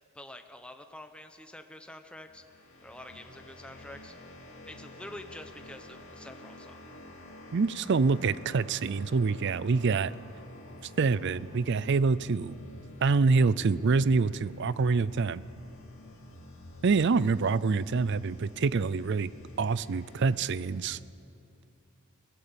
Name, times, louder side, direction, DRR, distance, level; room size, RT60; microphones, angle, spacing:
voice 1, 0.1-2.4 2.8-4.1 4.6-6.8, left 1 dB, 5° left, 7 dB, 0.9 m, -47 dB
sound 1, 2.2-20.7, left 1 dB, 65° left, 2.4 m, -49 dB
voice 2, 7.5-10.1 11.0-12.5 13.0-15.4 16.8-19.3 19.6-21.0, right 4 dB, 55° right, 18 dB, 0.4 m, -26 dB
22.0 x 17.5 x 7.0 m, 2.6 s
head